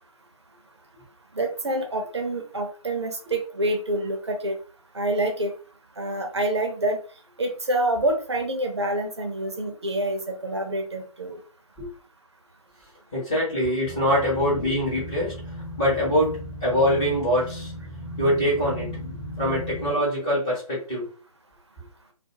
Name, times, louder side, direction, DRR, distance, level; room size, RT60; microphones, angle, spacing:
voice 1, 1.3-4.6 4.9-5.6 6.0-7.0 7.4-11.4, right 1 dB, 45° right, 4 dB, 0.6 m, -27 dB
voice 2, 13.1-15.4 15.8-17.7 18.2-21.1, equal, 10° left, -8 dB, 0.6 m, -24 dB
sound 1, 13.8-19.9, left 1 dB, 30° left, 0.9 m, -37 dB
2.3 x 2.1 x 2.8 m, 0.38 s
figure-of-eight pair, 150°, 20 cm